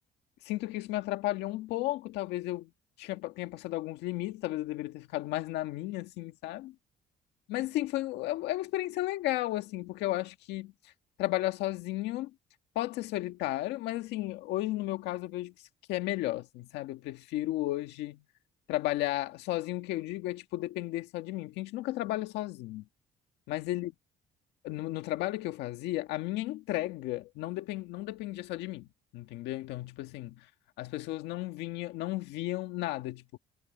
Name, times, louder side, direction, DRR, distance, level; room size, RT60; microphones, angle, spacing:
voice 1, 0.5-2.7 3.0-6.7 7.5-10.7 11.2-12.3 12.8-15.5 15.9-18.2 18.7-22.8 23.5-23.9 24.6-30.5 30.8-33.4, left 16 dB, 90° left, 1.8 m, -34 dB
cardioid pair, 110°, 17 cm